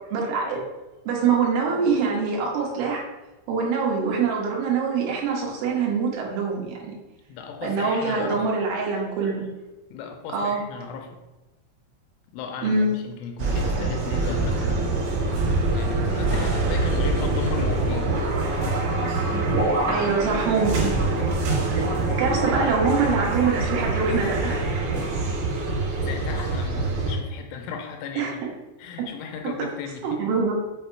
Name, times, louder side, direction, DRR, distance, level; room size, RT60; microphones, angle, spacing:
voice 1, 0.1-0.6 1.1-3.0 3.5-6.8 7.6-9.5 10.3-10.6 12.6-13.0 19.9-20.9 21.7-21.8 22.2-24.6 28.2-28.3 30.0-30.5, right 5 dB, 80° right, -2 dB, 3.5 m, -24 dB
voice 2, 7.3-8.5 9.9-11.2 12.3-15.4 15.7-18.2 25.2-25.3 25.8-28.4 28.8-30.2, left 6 dB, 85° left, 3 dB, 3.0 m, -36 dB
sound 1, 13.4-27.1, right 2 dB, 60° right, 3.3 m, -24 dB
7.7 x 2.8 x 4.5 m, 1.1 s
omnidirectional pair, 5.6 m